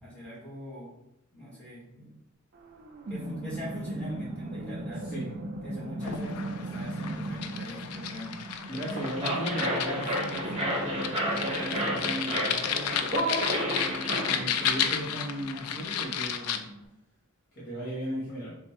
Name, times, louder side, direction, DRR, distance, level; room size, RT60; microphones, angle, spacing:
voice 1, 0.0-0.9 1.3-2.1 3.1-5.0 5.6-8.3, equal, 5° left, -7 dB, 1.4 m, -42 dB
sound 1, 2.6-16.8, right 2 dB, 45° right, 0.4 m, -39 dB
sound 2, 6.0-16.6, left 8 dB, 85° left, 0.3 m, -33 dB
voice 2, 8.7-16.7 17.5-18.5, equal, 45° left, -8 dB, 1.0 m, -37 dB
sound 3, 8.7-14.9, equal, 30° right, 0.8 m, -31 dB
3.3 x 2.1 x 4.1 m, 0.83 s
head